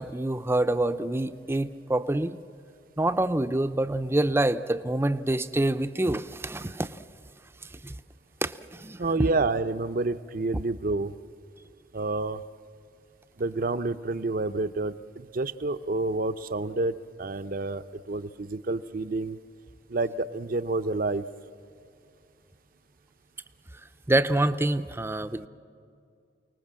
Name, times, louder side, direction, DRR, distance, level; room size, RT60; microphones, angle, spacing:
voice 1, 0.0-2.4 3.0-7.0 7.8-7.9 8.4-9.0 24.1-25.5, right 1 dB, 15° right, 11 dB, 0.6 m, -26 dB
voice 2, 9.0-11.1 11.9-12.4 13.4-19.4 19.9-21.2, right 3 dB, 55° right, 12 dB, 0.7 m, -29 dB
28.5 x 19.0 x 7.5 m, 2.4 s
head